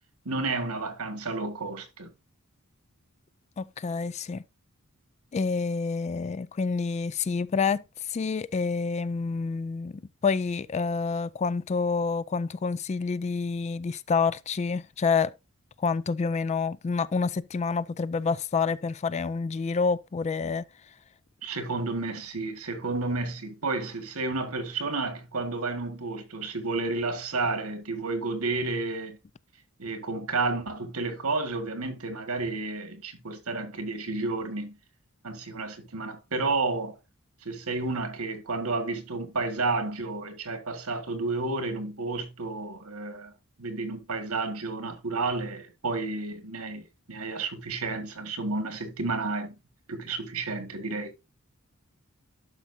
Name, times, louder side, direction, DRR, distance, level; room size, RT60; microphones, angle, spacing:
voice 1, 0.3-2.1 21.4-29.2 29.8-34.8 35.2-36.9 37.5-43.3 43.6-49.6 49.9-51.1, right 3 dB, 70° right, 1.8 m, -31 dB
voice 2, 3.6-4.4 5.3-15.3 15.8-20.6, left 5 dB, 30° left, 0.3 m, -28 dB
11.5 x 5.5 x 2.7 m
head